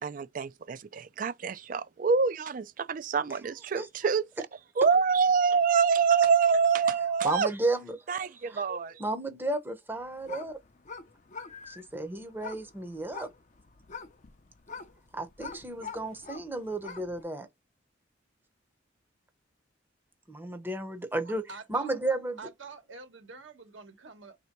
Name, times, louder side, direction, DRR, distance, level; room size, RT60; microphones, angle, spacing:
voice 1, 0.0-4.2 4.8-7.5 8.1-9.0, right 6 dB, 45° right, 0.4 m, -26 dB
voice 2, 7.2-8.0 8.5-8.7 9.0-10.6 11.7-13.3 15.1-17.5 20.3-21.4 21.7-22.4, right 2 dB, 10° right, 0.7 m, -33 dB
sound 1, 9.9-17.2, left 5 dB, 40° left, 0.6 m, -45 dB
voice 3, 21.2-22.0 22.4-24.4, right 4 dB, 85° right, 1.3 m, -47 dB
3.3 x 2.8 x 4.5 m
head